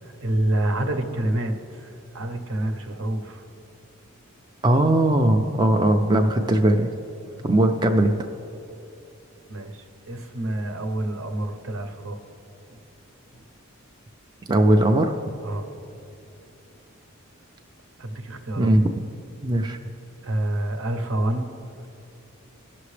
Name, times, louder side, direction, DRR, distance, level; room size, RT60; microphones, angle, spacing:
voice 1, 0.0-3.4 7.2-7.4 9.5-12.2 12.7-12.8 13.3-13.4 15.4-15.7 18.0-18.7 20.2-21.5, right 1 dB, 75° right, 6 dB, 0.8 m, -28 dB
voice 2, 4.6-6.9 7.4-8.1 14.5-15.2 18.6-18.8 19.4-19.8, right 1 dB, 20° right, 4 dB, 0.3 m, -19 dB
17.0 x 6.0 x 3.3 m, 2.7 s
head